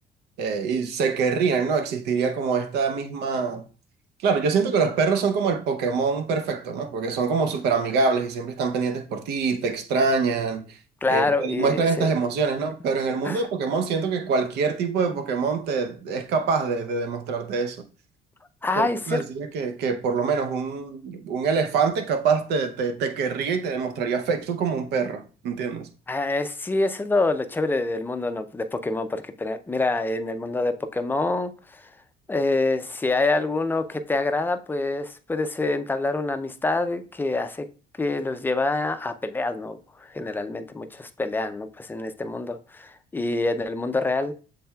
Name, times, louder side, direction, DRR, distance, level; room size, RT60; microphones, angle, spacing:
voice 1, 0.4-3.6 4.2-10.8 11.1-17.9 18.8-25.9, right 5 dB, 75° right, 0.7 m, -25 dB
voice 2, 11.0-12.1 13.2-13.4 18.6-19.2 26.1-31.8 32.3-37.7 38.0-44.3, left 2 dB, 10° left, 0.4 m, -26 dB
7.1 x 3.3 x 2.3 m
cardioid pair, 110°, 17 cm